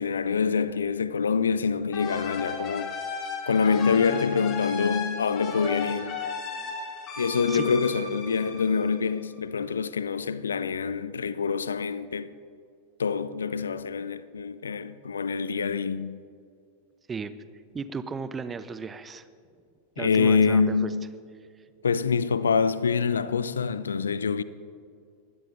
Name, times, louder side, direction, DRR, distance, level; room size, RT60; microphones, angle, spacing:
voice 1, 0.0-2.9 3.5-6.2 7.2-12.3 13.0-16.2 20.0-21.1 21.8-24.4, left 5 dB, 70° left, 0.5 m, -25 dB
sound 1, 1.9-9.4, left 4 dB, 30° left, 2.7 m, -35 dB
voice 2, 17.7-19.3 20.0-20.9, right 5 dB, 20° right, 0.7 m, -35 dB
21.5 x 16.5 x 2.7 m
figure-of-eight pair, 90°, 0 cm